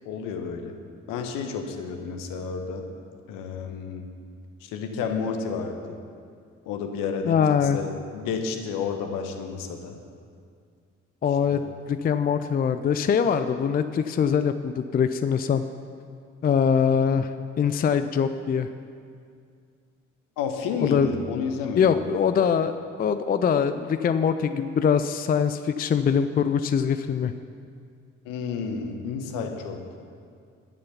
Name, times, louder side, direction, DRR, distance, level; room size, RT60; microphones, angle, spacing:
voice 1, 0.0-0.8 1.1-2.9 3.3-4.1 4.6-6.0 6.7-7.4 7.7-10.0 11.5-11.7 20.4-21.9 28.2-29.8, left 5 dB, 60° left, 5 dB, 1.2 m, -31 dB
voice 2, 7.3-7.8 11.2-11.6 11.9-15.6 16.4-18.7 20.8-21.1 21.8-22.7 23.0-27.3, left 7 dB, 25° left, 11 dB, 0.5 m, -23 dB
11.5 x 9.7 x 5.8 m, 2.2 s
figure-of-eight pair, 40°, 37 cm